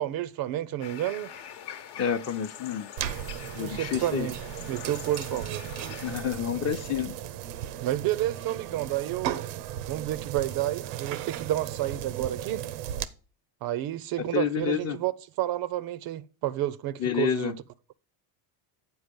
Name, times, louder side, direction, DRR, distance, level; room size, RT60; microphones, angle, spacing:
voice 1, 0.0-1.3 3.6-4.3 4.7-5.8 7.8-9.4 9.9-12.6 13.6-15.1 15.4-17.5, right 13 dB, 50° right, 0.5 m, -30 dB
sound 1, 0.8-6.2, left 9 dB, 60° left, 1.0 m, -44 dB
voice 2, 2.0-2.9 3.5-4.3 6.0-7.1 14.2-15.0 17.0-17.5, left 8 dB, 30° left, 0.7 m, -29 dB
sound 2, 3.0-13.0, right 11 dB, 90° right, 0.7 m, -36 dB
7.9 x 4.6 x 5.2 m
supercardioid pair, 100°, 48 cm